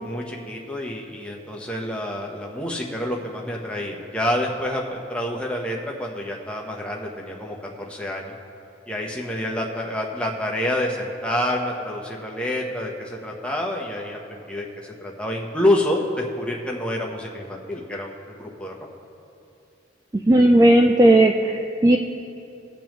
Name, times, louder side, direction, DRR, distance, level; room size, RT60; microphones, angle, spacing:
voice 1, 0.0-7.5 7.9-8.3 8.9-18.7, left 1 dB, 5° left, -1 dB, 1.0 m, -27 dB
voice 2, 20.1-22.0, right 1 dB, 20° right, 3 dB, 0.3 m, -15 dB
19.5 x 6.9 x 3.1 m, 2.8 s
head